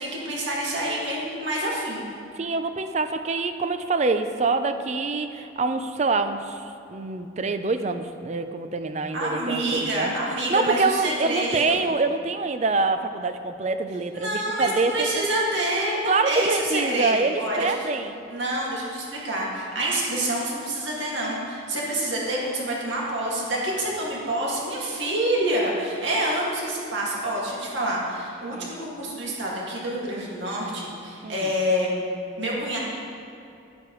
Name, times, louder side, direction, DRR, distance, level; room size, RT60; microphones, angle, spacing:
voice 1, 0.0-2.0 9.1-11.8 14.1-17.1 17.4-17.8 18.3-31.9 32.4-32.8, right 1 dB, 65° right, -4 dB, 2.1 m, -27 dB
voice 2, 2.3-15.3 16.0-18.2 28.4-28.7 31.2-31.5, right 3 dB, 35° right, 9 dB, 0.4 m, -26 dB
10.5 x 9.4 x 3.1 m, 2.7 s
head